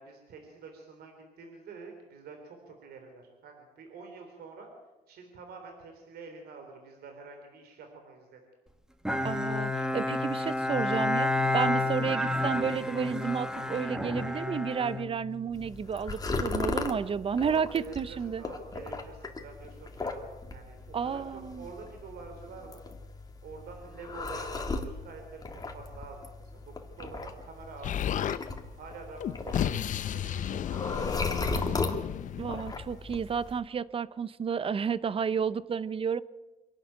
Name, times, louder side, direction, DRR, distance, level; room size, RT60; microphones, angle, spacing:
voice 1, 0.0-4.7 5.1-8.4 17.4-22.8 23.4-31.8, right 4 dB, 70° right, 4 dB, 3.7 m, -47 dB
Bowed string instrument, 9.0-15.7, left 2 dB, 5° right, 1.6 m, -30 dB
voice 2, 9.2-18.4 20.9-21.6 32.4-36.2, right 6 dB, 35° right, 17 dB, 0.7 m, -31 dB
sound 1, 15.5-33.6, left 3 dB, 20° left, 2.4 m, -37 dB
Explosion, 27.8-28.4 29.2-33.1, left 10 dB, 50° left, 0.7 m, -33 dB
25.5 x 11.5 x 9.0 m, 1.1 s
cardioid pair, 110°, 17 cm